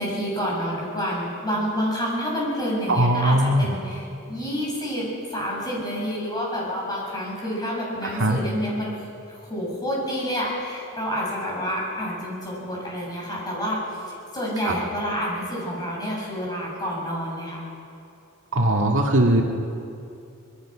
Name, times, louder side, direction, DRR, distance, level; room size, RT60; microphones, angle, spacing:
voice 1, 0.0-8.9 9.3-14.0 14.3-17.6, equal, 20° left, -4 dB, 7.4 m, -28 dB
voice 2, 2.9-3.7 8.0-8.4 14.6-14.8 18.5-19.4, right 1 dB, 60° right, 1 dB, 2.0 m, -20 dB
26.0 x 20.5 x 6.2 m, 2.6 s
head